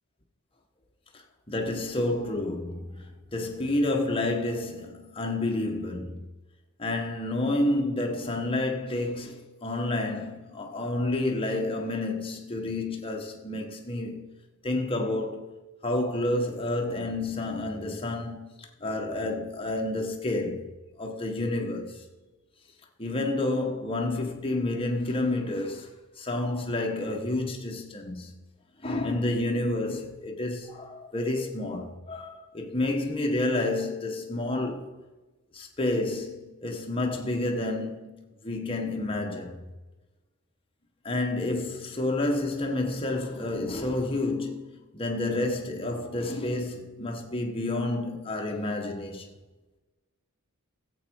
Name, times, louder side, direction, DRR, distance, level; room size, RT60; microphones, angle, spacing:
voice 1, 1.1-6.2 6.8-14.3 14.6-15.5 15.8-20.6 21.0-22.0 23.0-28.3 28.8-35.0 35.5-39.7 41.0-49.3, left 2 dB, 25° left, 1.6 m, -30 dB
14.0 x 8.4 x 4.8 m
head